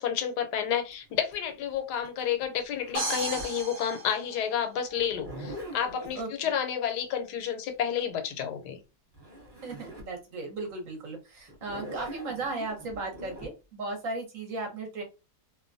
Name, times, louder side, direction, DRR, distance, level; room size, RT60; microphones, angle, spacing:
voice 1, 0.0-8.8, left 8 dB, 85° left, 1.2 m, -30 dB
Zipper (clothing), 0.9-3.6 5.0-6.2 8.8-8.9 9.1-10.1 10.6-10.7 11.5-13.5, equal, 20° right, 0.8 m, -43 dB
sound 1, 2.9-4.9, right 2 dB, 85° right, 1.3 m, -34 dB
voice 2, 6.1-6.5 9.6-15.0, right 3 dB, 60° right, 1.2 m, -36 dB
2.9 x 2.1 x 2.5 m
omnidirectional pair, 1.7 m